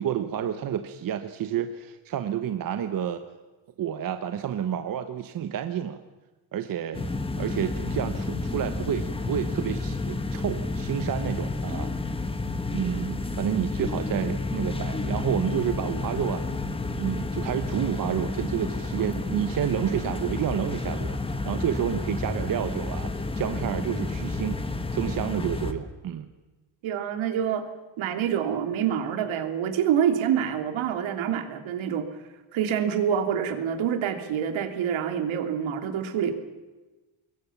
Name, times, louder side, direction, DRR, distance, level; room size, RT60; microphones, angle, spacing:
voice 1, 0.0-3.2 3.8-6.0 6.5-7.1 7.4-11.9 12.7-16.6 16.9-21.2 21.5-24.6 24.9-26.3, right 9 dB, 45° right, 8 dB, 1.2 m, -30 dB
sound 1, 6.9-25.7, left 3 dB, 10° left, 1.3 m, -31 dB
voice 2, 26.8-27.6 28.0-32.1 32.5-36.3, right 8 dB, 70° right, 7 dB, 3.1 m, -26 dB
26.0 x 22.0 x 7.3 m, 1.2 s
cardioid pair, 175°, 49 cm